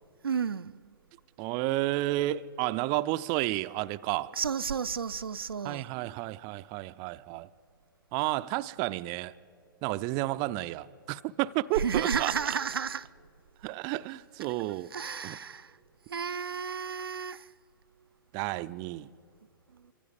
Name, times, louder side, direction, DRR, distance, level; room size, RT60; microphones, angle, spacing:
voice 1, 0.2-0.8 4.4-5.9 11.8-13.1 14.9-15.7 16.1-17.5, right 6 dB, 85° right, 0.5 m, -32 dB
voice 2, 1.4-4.3 5.6-7.5 8.1-9.3 9.8-12.6 13.6-14.9 15.2-15.4 18.3-19.1, right 17 dB, 35° right, 0.5 m, -31 dB
27.0 x 25.0 x 5.2 m
figure-of-eight pair, 115°, 12 cm